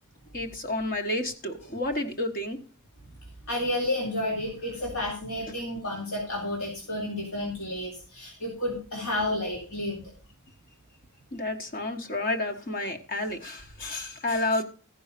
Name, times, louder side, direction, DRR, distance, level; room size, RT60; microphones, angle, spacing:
voice 1, 0.3-2.6 11.3-14.6, left 2 dB, 40° left, 4 dB, 1.4 m, -30 dB
voice 2, 3.5-10.0, left 1 dB, 80° left, -3 dB, 3.5 m, -31 dB
14.5 x 5.5 x 6.7 m, 0.39 s
head